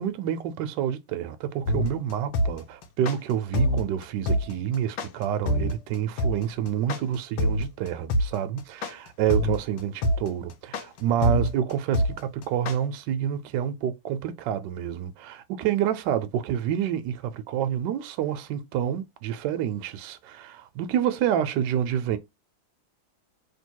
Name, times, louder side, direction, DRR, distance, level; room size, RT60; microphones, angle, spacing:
voice 1, 0.0-22.2, right 10 dB, 75° right, 1.1 m, -28 dB
sound 1, 1.7-12.8, left 1 dB, 80° left, 1.4 m, -25 dB
3.2 x 2.8 x 4.5 m
omnidirectional pair, 2.1 m